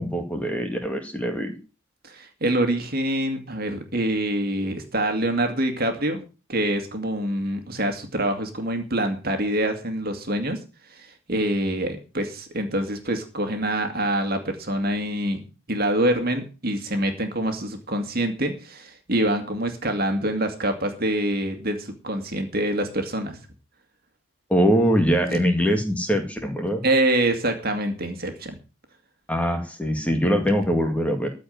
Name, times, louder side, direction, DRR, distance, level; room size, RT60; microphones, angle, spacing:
voice 1, 0.0-1.6 24.5-26.8 29.3-31.3, equal, 5° left, 5 dB, 2.0 m, -22 dB
voice 2, 2.0-6.2 6.5-10.6 10.9-23.4 25.3-25.4 26.8-28.6, right 1 dB, 45° right, 7 dB, 2.2 m, -25 dB
14.0 x 5.2 x 9.3 m, 0.33 s
head